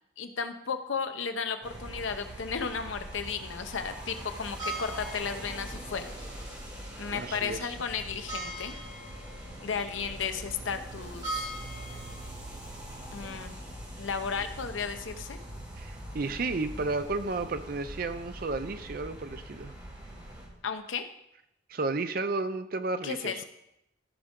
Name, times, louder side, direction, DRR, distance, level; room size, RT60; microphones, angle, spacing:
voice 1, 0.2-6.3 7.0-8.7 9.6-11.5 13.1-13.6 14.0-15.4 20.6-21.1 23.0-23.4, left 6 dB, 80° left, 8 dB, 0.8 m, -34 dB
sound 1, 1.6-20.5, right 1 dB, 20° right, 2.3 m, -41 dB
voice 2, 7.1-7.7 15.8-19.7 21.7-23.3, right 3 dB, 45° right, 10 dB, 0.5 m, -32 dB
15.0 x 5.0 x 3.7 m, 0.81 s
head